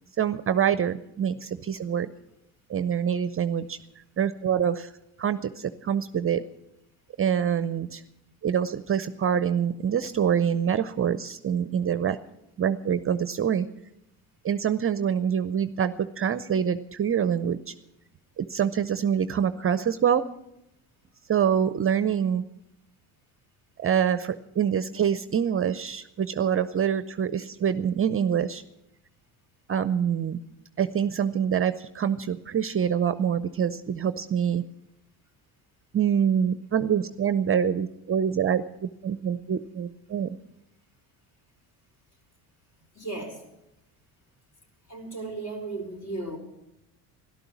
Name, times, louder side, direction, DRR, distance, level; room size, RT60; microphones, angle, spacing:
voice 1, 0.2-2.1 2.7-3.8 4.2-4.9 5.2-6.4 7.2-8.0 8.4-12.2 12.6-13.7 14.4-17.7 18.4-20.2 21.3-22.4 23.8-28.6 29.7-30.4 30.8-34.6 35.9-40.4, right 8 dB, 30° right, 13 dB, 0.6 m, -25 dB
voice 2, 42.9-43.4 44.9-46.4, right 3 dB, 45° left, 3 dB, 4.5 m, -35 dB
13.0 x 12.0 x 7.1 m, 0.85 s
supercardioid pair, 85°, 42 cm